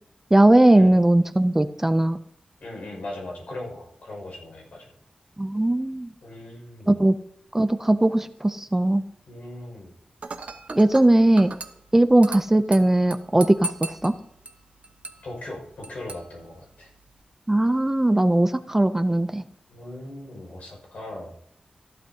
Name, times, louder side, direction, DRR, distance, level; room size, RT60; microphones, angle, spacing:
voice 1, 0.3-2.2 5.4-6.1 6.9-7.1 7.5-9.0 10.7-11.5 11.9-14.2 17.5-19.4, right 1 dB, 15° right, 11 dB, 0.4 m, -19 dB
voice 2, 2.6-4.9 6.2-7.0 9.3-9.9 15.2-16.9 19.7-21.4, left 1 dB, 75° left, -1 dB, 5.6 m, -39 dB
Dishes pots and pans / Glass, 10.2-17.2, right 3 dB, 60° right, 1.0 m, -40 dB
15.0 x 11.5 x 2.8 m, 0.74 s
wide cardioid pair, 125°, 3 cm